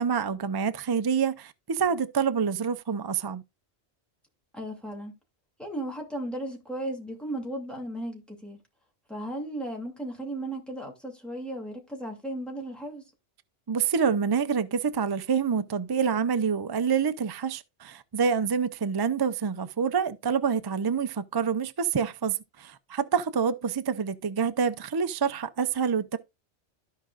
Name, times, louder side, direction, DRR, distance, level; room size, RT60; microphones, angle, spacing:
voice 1, 0.0-3.4 13.7-26.2, right 6 dB, 40° right, 0.3 m, -27 dB
voice 2, 4.5-5.1 5.6-8.6 9.1-13.0, right 1 dB, ahead, 2.6 m, -35 dB
14.0 x 5.0 x 2.4 m
omnidirectional pair, 1.1 m